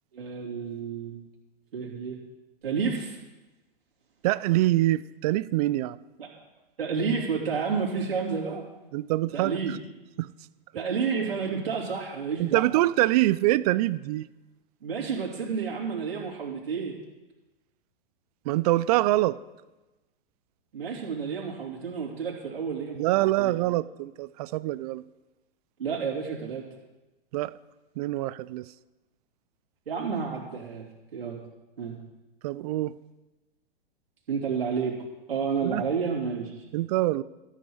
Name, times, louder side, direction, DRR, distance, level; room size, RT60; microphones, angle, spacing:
voice 1, 0.1-1.2 1.7-2.2 2.6-3.2 6.2-6.3 6.8-8.7 9.3-9.7 10.7-12.7 14.8-16.9 20.7-23.0 23.4-23.5 25.8-26.6 29.9-30.9 31.1-31.4 31.8-32.0 34.3-34.9 35.3-36.6, right 5 dB, 75° right, -4 dB, 3.2 m, -30 dB
voice 2, 4.2-6.0 8.9-9.6 10.2-10.3 12.4-14.3 18.5-19.4 22.9-25.0 27.3-27.5 28.0-28.7 32.4-32.9 35.6-35.9 36.7-37.2, right 17 dB, 40° right, 17 dB, 0.4 m, -25 dB
13.5 x 8.4 x 4.7 m, 1.1 s
hypercardioid pair, 110°, 30 cm